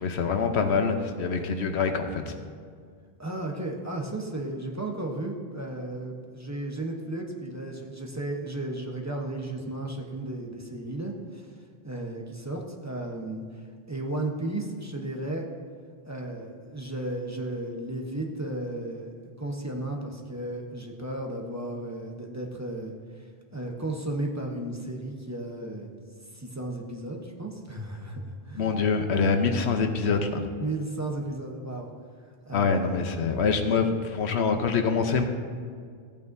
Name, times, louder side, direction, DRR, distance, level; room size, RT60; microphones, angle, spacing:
voice 1, 0.0-2.3 28.6-30.4 32.5-35.2, left 5 dB, 90° left, 6 dB, 1.1 m, -25 dB
voice 2, 3.2-11.5 11.8-13.4 13.9-15.5 16.0-22.9 23.5-25.9 26.3-28.8 30.6-31.9 32.4-32.8, right 2 dB, 15° right, 0 dB, 0.9 m, -34 dB
14.5 x 8.8 x 2.7 m, 2.1 s
omnidirectional pair, 1.1 m